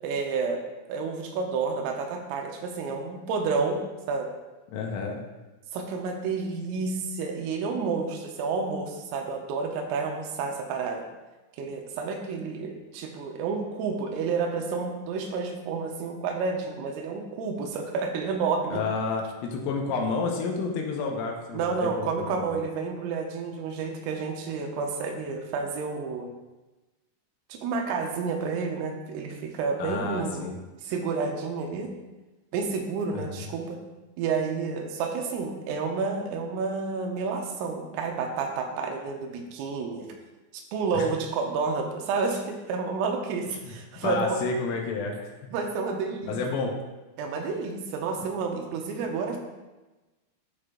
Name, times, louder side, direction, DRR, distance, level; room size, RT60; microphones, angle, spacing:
voice 1, 0.0-0.6 0.9-3.8 4.1-4.3 5.7-11.0 11.6-18.8 21.5-26.3 27.5-30.5 30.8-31.9 32.5-33.8 34.2-40.1 40.5-44.4 45.5-46.4 47.2-49.4, right 4 dB, 85° right, 3 dB, 3.4 m, -30 dB
voice 2, 4.7-5.2 18.7-22.5 29.8-30.6 33.1-33.3 40.9-41.1 43.6-43.7 44.0-45.3 46.3-46.7, left 4 dB, 80° left, 1 dB, 3.3 m, -30 dB
12.0 x 4.9 x 2.5 m, 1.1 s
omnidirectional pair, 5.8 m